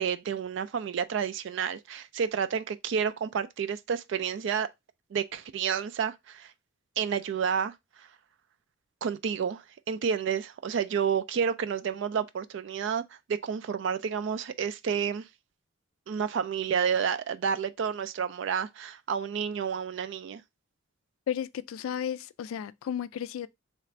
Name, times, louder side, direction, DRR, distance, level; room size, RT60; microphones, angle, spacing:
voice 1, 0.0-4.7 5.1-6.5 7.0-7.7 9.0-13.0 13.3-15.2 16.1-20.4, right 7 dB, 60° right, 0.3 m, -30 dB
voice 2, 21.3-23.5, left 9 dB, 90° left, 0.3 m, -33 dB
3.1 x 2.5 x 4.3 m
head